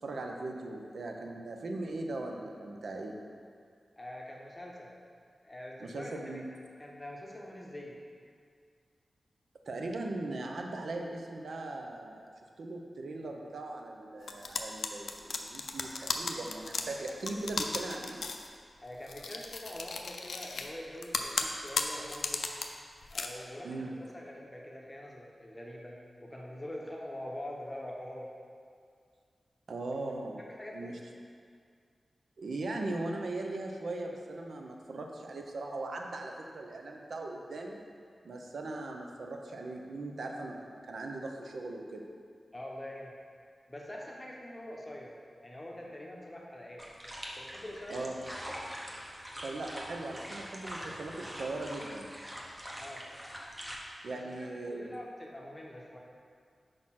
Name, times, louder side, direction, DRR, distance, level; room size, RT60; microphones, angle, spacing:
voice 1, 0.0-3.2 5.8-6.5 9.7-12.2 12.6-18.2 23.6-24.0 29.7-30.4 30.7-31.0 32.4-37.9 38.2-42.1 47.9-48.2 49.4-52.1 54.0-55.0, right 2 dB, 80° right, 2 dB, 0.6 m, -39 dB
voice 2, 4.0-4.9 5.4-6.4 6.8-7.9 18.8-22.5 23.1-28.3 30.6-31.0 42.5-43.1 43.7-45.2 45.4-46.8 47.4-48.1 52.8-53.0 54.1-56.0, left 1 dB, 20° left, -2 dB, 0.8 m, -44 dB
sound 1, 14.3-18.5 19.1-20.7 21.0-22.6 23.0-23.3, left 4 dB, 85° left, 0.4 m, -35 dB
sound 2, 46.8-53.8, equal, 15° right, 0.8 m, -43 dB
4.9 x 4.2 x 5.7 m, 2.2 s
wide cardioid pair, 95°, 0 cm